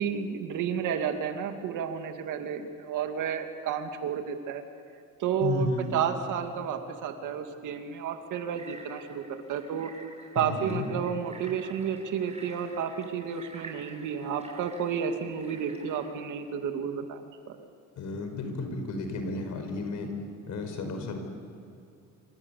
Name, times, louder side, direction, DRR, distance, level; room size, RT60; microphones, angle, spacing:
voice 1, 0.0-4.6 5.2-9.2 9.5-9.9 10.3-17.6, right 7 dB, 85° right, 5 dB, 2.6 m, -31 dB
voice 2, 5.4-6.0 10.4-10.9 18.0-20.1 20.5-21.2, left 3 dB, 75° left, 5 dB, 5.4 m, -33 dB
sound 1, 8.5-16.1, right 3 dB, 20° right, 7.4 m, -50 dB
27.0 x 25.5 x 8.5 m, 2.5 s
cardioid pair, 90°, 30 cm